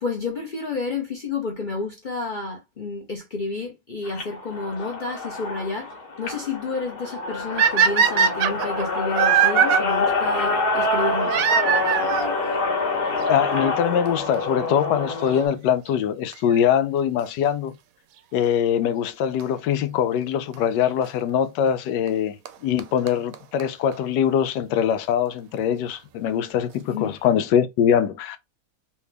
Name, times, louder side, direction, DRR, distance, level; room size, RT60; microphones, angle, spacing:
voice 1, 0.0-11.5 26.9-27.2, left 4 dB, 45° left, 0.6 m, -30 dB
sound 1, 4.1-15.5, left 3 dB, 70° left, 1.5 m, -26 dB
sound 2, 7.6-9.8 11.3-12.3 13.3-13.4 14.1-14.2 14.3-14.4 16.3-16.6 19.4-19.5 20.5-20.6 22.1-22.2 22.5-22.6 22.8-22.9 23.1-23.2 23.3-23.4 23.6-23.7 23.9-24.0, right 8 dB, 70° right, 0.9 m, -20 dB
voice 2, 13.3-17.7 18.3-28.4, left 9 dB, 85° left, 1.2 m, -23 dB
3.3 x 2.8 x 3.3 m
omnidirectional pair, 1.8 m